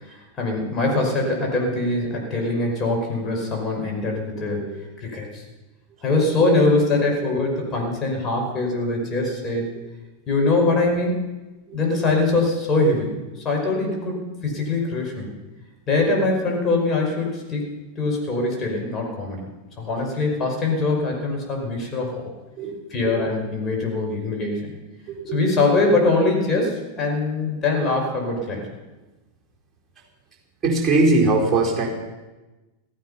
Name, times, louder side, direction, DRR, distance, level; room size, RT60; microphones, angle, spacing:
voice 1, 0.1-4.7 5.0-5.4 6.0-9.7 10.3-11.2 11.7-13.2 13.4-15.3 15.9-19.4 19.8-22.3 22.9-24.7 25.3-28.7, left 2 dB, 25° left, 0 dB, 5.5 m, -23 dB
voice 2, 25.1-25.7 30.6-31.9, right 2 dB, 15° right, -3 dB, 4.4 m, -21 dB
16.0 x 13.5 x 5.7 m, 1.1 s
figure-of-eight pair, 90°, 0 cm